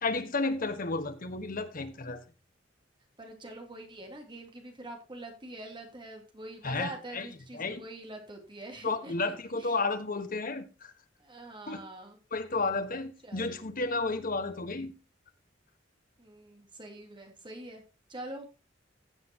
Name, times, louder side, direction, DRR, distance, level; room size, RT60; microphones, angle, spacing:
voice 1, 0.0-2.2 6.6-7.3 7.5-7.8 8.8-10.9 11.7-11.8 12.3-14.9, left 3 dB, 50° left, 1.4 m, -32 dB
voice 2, 3.2-9.1 9.5-9.7 11.2-12.2 13.2-13.6 16.2-17.8 18.1-18.5, right 1 dB, 25° right, 3.0 m, -44 dB
16.0 x 7.8 x 2.9 m
head